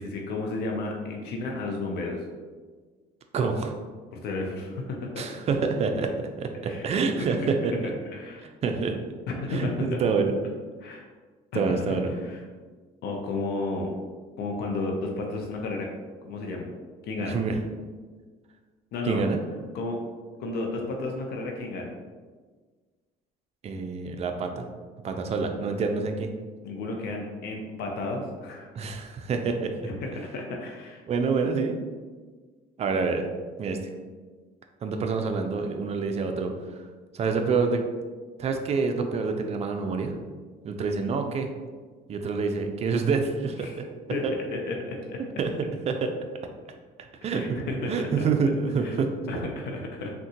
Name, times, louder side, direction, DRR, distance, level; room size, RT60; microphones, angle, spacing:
voice 1, 0.0-2.2 4.2-5.4 6.6-7.3 8.1-8.5 9.4-10.0 10.8-11.1 11.5-12.4 13.0-13.9 14.4-15.9 16.2-16.7 17.1-17.4 18.9-19.2 19.7-20.0 20.4-21.9 26.6-28.7 29.8-31.0 43.6-43.8 44.1-44.2 44.5-45.2 47.3-48.3 48.8-49.0 49.3-50.1, left 3 dB, 75° left, 1 dB, 0.5 m, -32 dB
voice 2, 3.3-3.7 5.2-6.1 6.4-7.9 8.6-9.0 9.5-10.4 11.5-12.1 17.2-17.6 19.0-19.4 23.6-24.7 25.0-26.3 28.8-29.7 31.1-31.8 32.8-33.2 33.6-33.8 34.8-36.5 37.1-37.8 38.4-40.1 40.6-41.5 42.1-43.7 44.2-44.3 45.4-45.5 45.9-46.2 47.2-49.1, right 4 dB, 40° right, 5 dB, 0.4 m, -27 dB
3.6 x 2.2 x 2.7 m, 1.4 s
cardioid pair, 110°, 17 cm